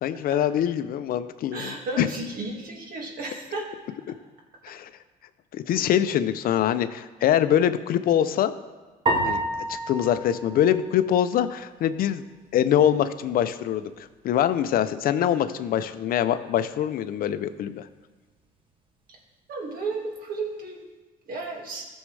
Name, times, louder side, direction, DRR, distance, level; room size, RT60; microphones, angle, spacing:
voice 1, 0.0-2.1 4.6-4.9 5.5-8.5 9.2-12.2 12.5-13.9 14.2-17.8, left 10 dB, 60° left, 12 dB, 0.5 m, -24 dB
voice 2, 1.5-3.7 19.1-19.2 19.5-20.8 21.3-21.9, right 3 dB, 60° right, 0 dB, 2.0 m, -33 dB
sound 1, 9.1-11.5, right 1 dB, 30° right, 1.4 m, -29 dB
14.5 x 6.3 x 3.3 m, 1.3 s
cardioid pair, 110°, 17 cm